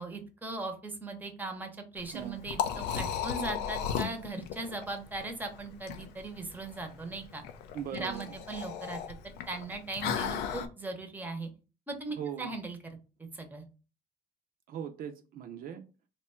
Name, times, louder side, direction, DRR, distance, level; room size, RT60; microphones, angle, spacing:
voice 1, 0.0-7.4 7.9-9.2 9.5-11.5 11.9-12.8 13.3-13.6, right 2 dB, 10° right, 5 dB, 0.7 m, -39 dB
Liquid, 2.0-10.7, left 8 dB, 90° left, 0.4 m, -36 dB
voice 2, 2.1-2.4 7.7-8.2 12.2-12.5 14.7-15.8, right 8 dB, 60° right, 5 dB, 0.5 m, -39 dB
2.9 x 2.2 x 4.2 m, 0.34 s
cardioid pair, 110°, 17 cm